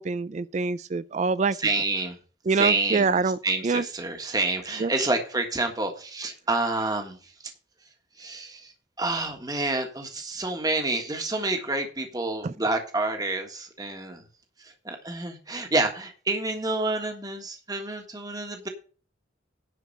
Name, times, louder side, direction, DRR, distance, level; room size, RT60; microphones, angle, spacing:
voice 1, 0.0-1.6 2.5-3.4 3.6-3.8 4.8-4.9 12.4-12.5, right 4 dB, 40° right, 0.4 m, -25 dB
voice 2, 1.6-2.2 2.5-3.2 3.4-7.3 8.2-8.7 9.0-14.2 14.6-18.7, right 2 dB, 20° right, 1.5 m, -28 dB
10.5 x 4.7 x 7.8 m
head